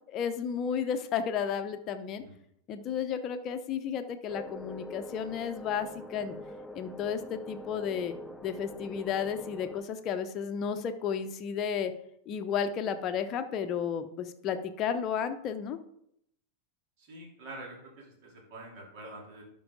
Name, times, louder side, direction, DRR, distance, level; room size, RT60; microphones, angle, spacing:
voice 1, 0.1-2.2 2.7-6.4 6.7-8.2 8.4-11.9 12.3-15.8, left 7 dB, 35° left, 8 dB, 0.9 m, -33 dB
sound 1, 4.3-9.8, left 1 dB, 5° left, 0.5 m, -44 dB
voice 2, 17.0-19.4, right 2 dB, 45° right, -2 dB, 3.4 m, -46 dB
11.5 x 5.5 x 3.9 m, 0.74 s
figure-of-eight pair, 90°, 0 cm